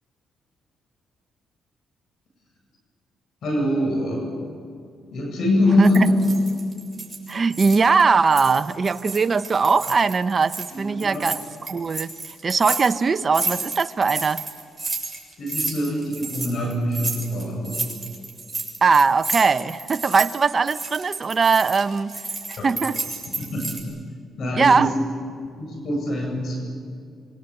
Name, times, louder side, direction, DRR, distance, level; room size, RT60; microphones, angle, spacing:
voice 1, 3.4-4.3 5.1-6.2 10.7-11.3 15.4-17.8 22.6-22.7 23.4-23.8 24.4-24.9 25.6-26.6, left 1 dB, 60° left, 1 dB, 8.0 m, -24 dB
sound 1, 5.8-8.0 8.3-10.7 11.0-23.8, right 3 dB, 15° right, 7.4 m, -31 dB
voice 2, 5.8-6.1 7.3-12.1 12.4-14.4 18.8-22.1 22.5-23.0 24.6-24.9, right 4 dB, 35° right, 11 dB, 0.8 m, -20 dB
27.5 x 24.5 x 8.2 m, 2.2 s
cardioid pair, 90°, 0 cm